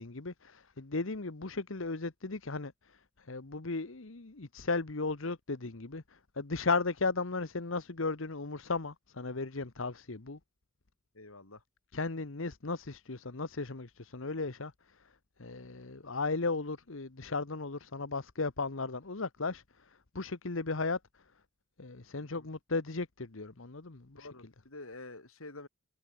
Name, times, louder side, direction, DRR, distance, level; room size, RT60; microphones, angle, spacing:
voice 1, 0.0-2.7 3.3-6.0 6.4-10.4 11.9-14.7 15.4-19.6 20.1-21.0 21.8-24.3, left 3 dB, 65° left, 1.2 m, -35 dB
voice 2, 11.1-11.6 22.2-22.5 24.1-25.7, left 2 dB, 85° left, 5.8 m, -48 dB
head